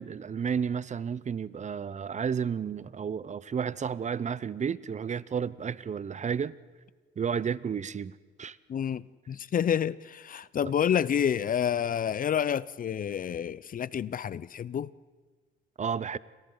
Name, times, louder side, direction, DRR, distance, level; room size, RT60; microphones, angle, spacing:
voice 1, 0.0-6.5 7.2-8.6 10.6-10.7 15.8-16.2, right 7 dB, 35° right, 0.7 m, -32 dB
voice 2, 8.7-14.9, left 8 dB, 45° left, 0.5 m, -29 dB
29.0 x 26.0 x 3.9 m
cardioid pair, 90°, 20 cm